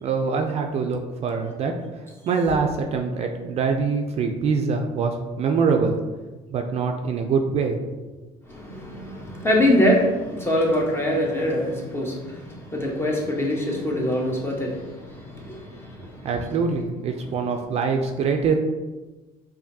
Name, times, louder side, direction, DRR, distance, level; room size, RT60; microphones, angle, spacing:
voice 1, 0.0-1.7 2.3-6.0 6.5-7.9 16.2-18.6, right 5 dB, 45° right, 4 dB, 0.4 m, -24 dB
voice 2, 8.5-16.3 17.3-17.4, left 1 dB, 15° left, -2 dB, 1.0 m, -24 dB
4.9 x 2.6 x 2.7 m, 1.2 s
cardioid pair, 100°, 15 cm